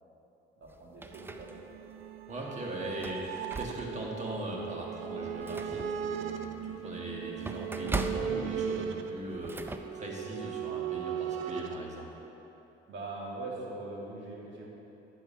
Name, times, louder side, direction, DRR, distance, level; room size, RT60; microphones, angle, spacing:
sound 1, 0.6-1.9 2.4-2.5 2.9-4.1 4.6-4.7 5.1-9.8, right 3 dB, 10° right, 0.4 m, -40 dB
voice 1, 0.6-1.7 12.9-14.7, right 2 dB, 65° right, -4 dB, 2.1 m, -41 dB
sound 2, 1.1-11.8, right 8 dB, 85° right, 0.5 m, -38 dB
voice 2, 2.3-6.5 6.8-12.1, right 1 dB, 35° right, -2 dB, 1.8 m, -39 dB
11.0 x 4.7 x 5.7 m, 3.0 s
cardioid pair, 90°, 20 cm